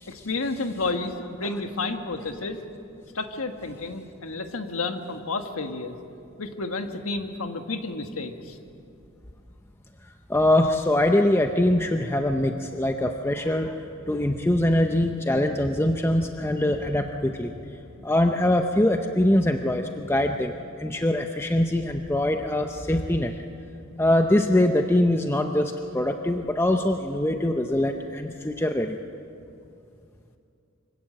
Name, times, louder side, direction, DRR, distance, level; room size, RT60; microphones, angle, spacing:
voice 1, 0.1-2.6 3.1-6.0 6.4-8.6, left 3 dB, 80° left, 6 dB, 1.5 m, -31 dB
voice 2, 10.3-17.5 18.0-23.3 24.0-29.0, left 1 dB, 10° left, 5 dB, 0.6 m, -23 dB
25.0 x 16.5 x 7.7 m, 2.6 s
head